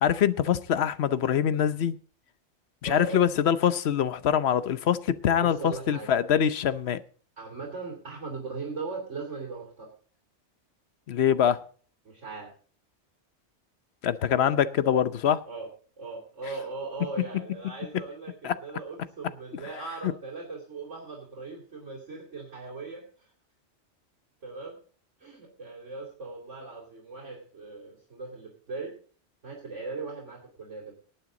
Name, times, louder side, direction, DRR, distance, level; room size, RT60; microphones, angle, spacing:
voice 1, 0.0-1.9 2.8-7.0 11.1-11.6 14.0-15.4 18.4-18.6 20.0-20.1, left 9 dB, 65° left, 1.0 m, -24 dB
voice 2, 2.8-3.2 5.4-6.1 7.4-9.9 12.1-12.5 15.5-15.7 16.0-23.3 24.4-24.8 25.2-29.0 29.4-30.9, right 3 dB, 85° right, 3.5 m, -39 dB
18.5 x 9.1 x 3.8 m
omnidirectional pair, 1.2 m